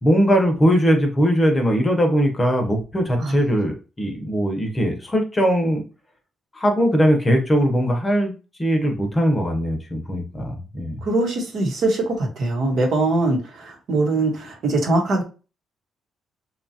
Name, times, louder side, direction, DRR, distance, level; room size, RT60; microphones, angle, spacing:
voice 1, 0.0-5.8 6.5-8.3 8.6-11.0, equal, 20° left, 3 dB, 0.8 m, -20 dB
voice 2, 11.0-15.2, right 2 dB, 65° right, 1 dB, 1.1 m, -22 dB
2.8 x 2.4 x 2.7 m, 0.33 s
cardioid pair, 90°, 0 cm